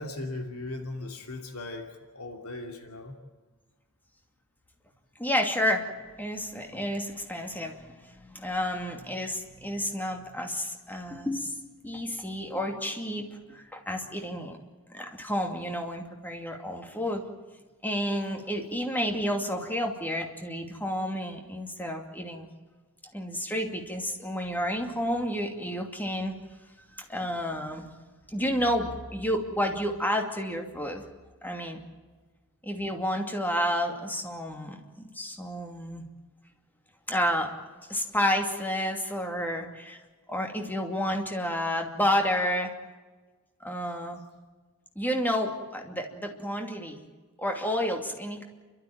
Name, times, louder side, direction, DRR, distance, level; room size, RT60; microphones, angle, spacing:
voice 1, 0.0-3.2, left 2 dB, 75° left, 3 dB, 2.8 m, -38 dB
voice 2, 5.2-5.9 6.2-11.5 11.8-14.6 14.9-17.2 17.8-22.5 23.1-26.3 27.0-27.9 28.3-31.0 31.4-31.8 32.6-36.0 37.1-37.5 37.9-40.0 40.3-42.7 43.6-44.2 45.0-47.0 47.4-48.4, equal, 10° left, 3 dB, 2.6 m, -30 dB
29.0 x 13.0 x 9.2 m, 1.3 s
head